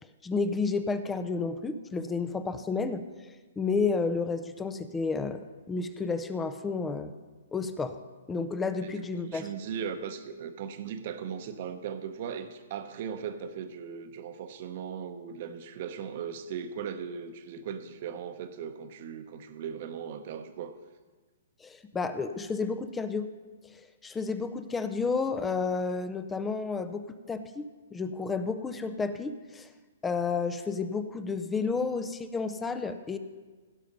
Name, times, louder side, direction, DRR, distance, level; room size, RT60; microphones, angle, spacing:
voice 1, 0.2-5.4 5.7-7.1 7.5-8.0 8.3-9.5 21.6-23.3 23.7-29.7 30.0-33.2, left 4 dB, 10° left, 10 dB, 0.5 m, -31 dB
voice 2, 8.8-20.8, right 7 dB, 50° right, 9 dB, 0.9 m, -38 dB
16.5 x 5.7 x 5.2 m, 1.3 s
hypercardioid pair, 145°, 0 cm